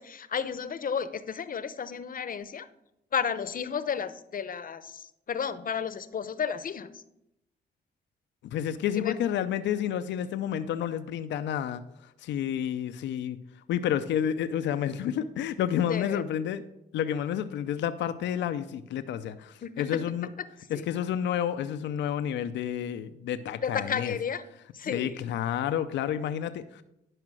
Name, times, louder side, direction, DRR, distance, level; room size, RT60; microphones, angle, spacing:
voice 1, 0.0-2.7 3.1-7.0 9.0-9.2 15.9-16.2 19.6-20.0 20.7-20.9 23.6-24.4 24.7-25.3, left 7 dB, 50° left, 13 dB, 0.7 m, -32 dB
voice 2, 8.5-11.8 12.2-13.4 13.7-16.6 16.9-20.3 20.7-24.2 24.9-26.8, left 9 dB, 85° left, 11 dB, 0.5 m, -30 dB
11.0 x 5.0 x 6.2 m, 0.85 s
cardioid pair, 65°, 18 cm